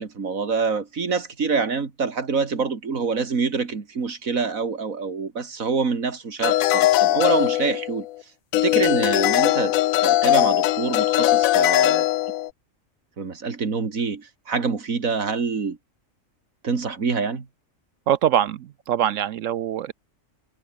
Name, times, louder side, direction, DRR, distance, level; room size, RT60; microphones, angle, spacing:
voice 1, 0.0-8.1 8.6-9.7 10.0-12.1 13.2-15.8 16.6-17.5, right 5 dB, 90° right, 2.7 m, -26 dB
sound 1, 6.4-8.1 8.5-12.5, left 15 dB, 90° left, 1.0 m, -20 dB
voice 2, 18.1-19.9, right 10 dB, 70° right, 1.0 m, -23 dB
omnidirectional pair, 1.4 m